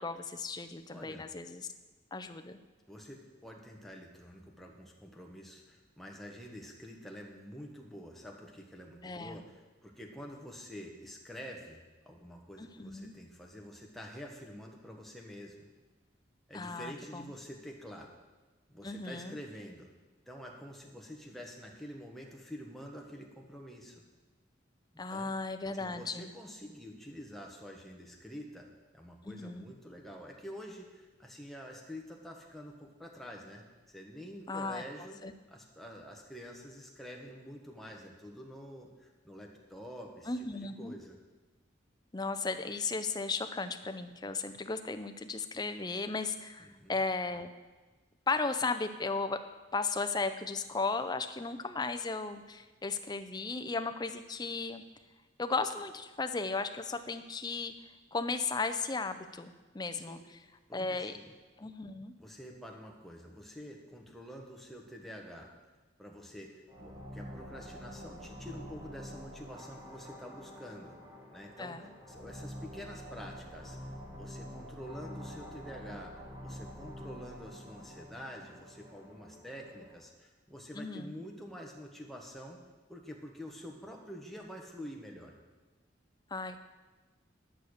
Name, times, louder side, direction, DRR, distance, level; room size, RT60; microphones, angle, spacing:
voice 1, 0.0-1.7 2.1-2.6 9.0-9.4 12.6-13.1 16.5-17.3 18.8-19.4 25.0-26.3 29.2-29.7 34.5-34.8 35.2-35.3 40.3-40.9 42.1-47.5 48.3-49.4 49.7-54.8 55.4-57.7 58.1-60.2 60.7-61.1 61.6-62.1 71.6-71.8 80.7-81.2 86.3-86.6, left 3 dB, 20° left, 9 dB, 0.5 m, -35 dB
voice 2, 0.9-1.2 2.9-15.7 16.5-18.1 18.7-19.9 20.3-24.0 25.1-25.3 25.7-28.7 28.9-35.2 35.5-41.2 46.6-47.1 60.0-60.3 60.7-61.3 62.2-65.5 66.0-71.0 71.3-82.6 82.9-85.4, equal, ahead, 0 dB, 1.3 m, -47 dB
sound 1, 66.7-80.0, equal, 25° right, 1.9 m, -47 dB
11.0 x 6.7 x 6.5 m, 1.3 s
head